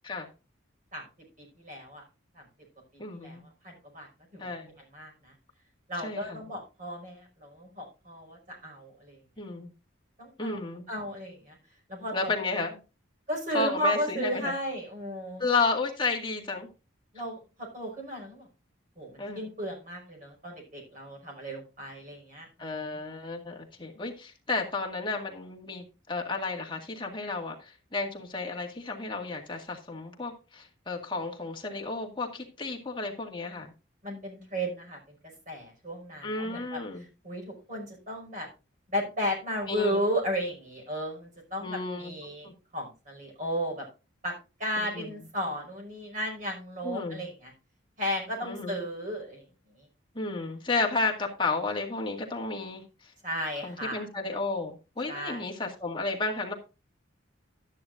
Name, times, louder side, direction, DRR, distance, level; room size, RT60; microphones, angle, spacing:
voice 1, 1.4-2.0 3.1-3.4 3.6-4.1 4.3-4.4 4.9-5.3 5.9-9.2 10.2-10.6 10.9-11.5 11.9-12.3 13.3-15.4 17.1-18.5 19.0-22.5 34.0-35.1 35.5-38.5 38.9-43.9 44.2-44.3 44.6-47.5 48.0-49.4 53.2-54.1 55.1-55.4, equal, 40° right, -1 dB, 5.6 m, -34 dB
voice 2, 3.0-3.4 4.4-4.7 5.9-6.4 9.4-9.7 10.4-10.9 12.1-12.8 13.5-14.5 15.4-16.7 19.2-19.5 22.6-33.7 36.2-37.0 39.7-40.0 41.6-42.1 42.4-42.5 44.8-45.1 46.8-47.2 48.4-48.8 50.2-53.1 53.6-56.5, left 3 dB, 25° left, 1 dB, 1.9 m, -32 dB
12.0 x 10.5 x 2.6 m, 0.30 s
head